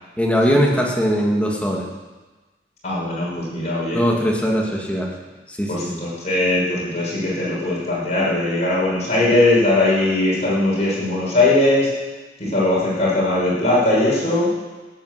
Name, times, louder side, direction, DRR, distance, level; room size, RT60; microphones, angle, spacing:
voice 1, 0.2-1.9 3.9-5.1 5.6-6.0, equal, 5° left, -1 dB, 2.0 m, -20 dB
voice 2, 2.8-4.0 5.7-11.9 12.5-14.5, left 2 dB, 40° left, -6 dB, 6.3 m, -19 dB
13.0 x 9.9 x 7.9 m, 1.2 s
head